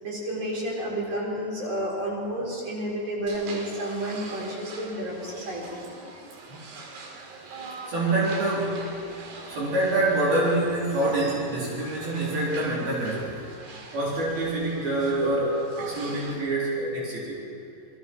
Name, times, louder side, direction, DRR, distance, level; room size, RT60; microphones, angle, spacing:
voice 1, 0.0-5.8 6.5-6.6, right 1 dB, 40° right, -4 dB, 5.2 m, -31 dB
sound 1, 3.3-16.3, right 3 dB, 90° right, 4.4 m, -43 dB
voice 2, 7.9-9.0 9.5-13.4 13.9-17.4, right 2 dB, 70° right, -6 dB, 5.7 m, -26 dB
28.0 x 20.5 x 4.6 m, 2.6 s
omnidirectional pair, 4.5 m